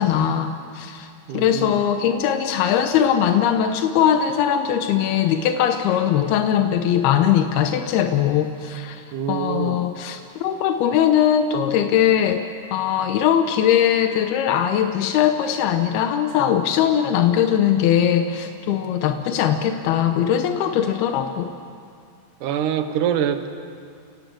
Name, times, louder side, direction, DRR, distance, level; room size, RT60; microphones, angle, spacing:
voice 1, 0.0-1.1 1.3-9.0 9.3-12.4 12.7-21.5, left 9 dB, 90° left, 6 dB, 2.9 m, -20 dB
voice 2, 1.3-1.8 9.1-9.9 22.4-23.5, right 9 dB, 70° right, 8 dB, 2.4 m, -25 dB
30.0 x 18.5 x 7.8 m, 2.3 s
omnidirectional pair, 4.4 m